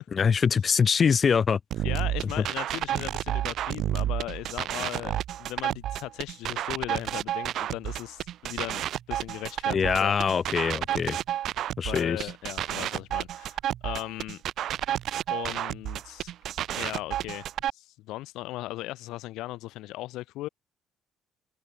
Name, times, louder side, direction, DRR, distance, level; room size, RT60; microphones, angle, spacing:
voice 1, 0.1-1.6 9.7-11.2 11.8-12.3, left 6 dB, 30° left, 0.7 m, -23 dB
sound 1, 1.7-17.7, right 12 dB, 55° right, 1.0 m, -31 dB
voice 2, 1.8-10.2 11.8-14.4 15.3-16.3 16.7-17.5 17.7-20.5, left 17 dB, 80° left, 0.6 m, -37 dB
open air
cardioid pair, 160°, 0 cm